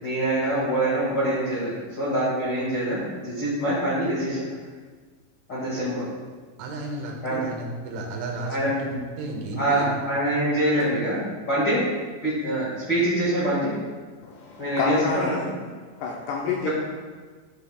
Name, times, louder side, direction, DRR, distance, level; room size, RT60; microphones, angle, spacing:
voice 1, 0.0-4.5 5.5-6.1 7.2-7.4 8.5-8.7 9.6-11.2 11.5-11.8 12.2-13.7 14.6-15.4 16.6-16.7, right 1 dB, 60° left, -10 dB, 1.2 m, -25 dB
voice 2, 6.6-10.0, right 2 dB, 85° right, 1 dB, 3.5 m, -33 dB
voice 3, 14.2-15.5 16.0-16.7, left 5 dB, 85° left, -1 dB, 2.4 m, -28 dB
13.0 x 5.6 x 2.3 m, 1.5 s
omnidirectional pair, 5.4 m